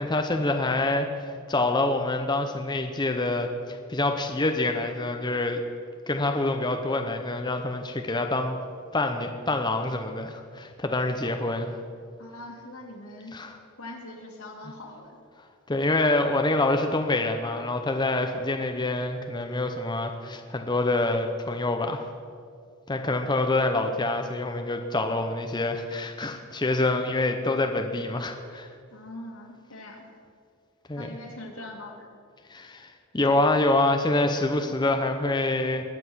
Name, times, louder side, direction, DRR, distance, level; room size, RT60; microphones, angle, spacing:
voice 1, 0.0-5.6 6.1-8.6 8.9-11.8 13.3-13.5 15.7-22.1 22.9-28.7 30.9-31.1 32.5-35.8, left 2 dB, 20° left, 5 dB, 0.7 m, -26 dB
voice 2, 12.2-13.4 13.8-15.2 28.9-30.0 30.9-32.1, left 1 dB, 85° left, 0 dB, 2.5 m, -42 dB
21.0 x 7.8 x 6.2 m, 2.3 s
head